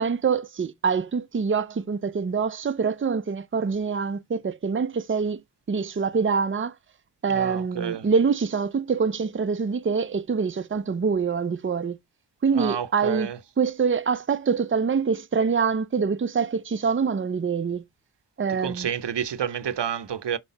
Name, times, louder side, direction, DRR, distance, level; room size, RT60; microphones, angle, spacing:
voice 1, 0.0-5.4 5.7-6.7 7.2-12.0 12.4-13.3 13.6-17.8 18.4-18.9, right 5 dB, 30° right, 0.5 m, -25 dB
voice 2, 7.3-8.1 12.5-13.4 18.5-20.4, right 8 dB, 85° right, 0.6 m, -30 dB
5.6 x 4.4 x 4.0 m
wide cardioid pair, 40°, 41 cm